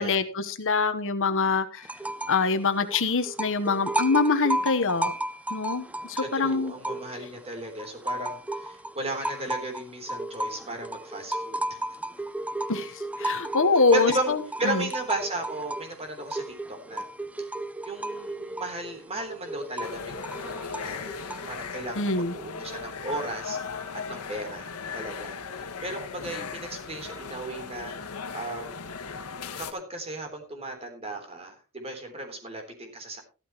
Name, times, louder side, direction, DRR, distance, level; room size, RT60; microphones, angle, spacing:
voice 1, 0.0-1.9 2.3-5.1 5.5-6.7 12.7-12.9 13.2-14.4 14.6-14.8 22.0-22.3, left 4 dB, 60° left, 10 dB, 1.1 m, -24 dB
sound 1, 1.8-2.5 2.7-7.4 7.8-21.6, right 1 dB, 5° right, 0.5 m, -34 dB
voice 2, 6.2-11.8 13.9-17.1 17.4-17.5 17.8-23.6 24.1-28.9 29.6-33.2, right 2 dB, 30° right, 4 dB, 3.6 m, -35 dB
sound 2, 19.8-29.7, left 5 dB, 80° left, 1.6 m, -37 dB
14.5 x 13.0 x 3.1 m, 0.32 s
head